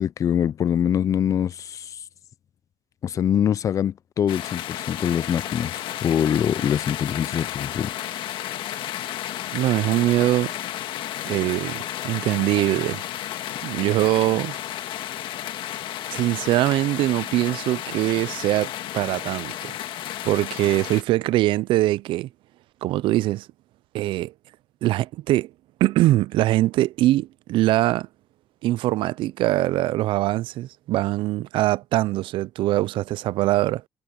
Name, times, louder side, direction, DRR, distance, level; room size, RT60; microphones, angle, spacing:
voice 1, 0.0-1.9 3.0-5.7 6.0-7.9, left 9 dB, 35° left, 0.3 m, -24 dB
sound 1, 4.3-21.0, left 12 dB, 65° left, 1.7 m, -32 dB
voice 2, 9.5-10.5 11.2-13.0 13.6-14.5 16.1-19.7 20.2-22.3 22.8-23.5 23.9-24.3 24.8-25.5 25.8-28.1 28.6-33.8, right 16 dB, 70° right, 0.4 m, -22 dB
cardioid pair, 135°, 9 cm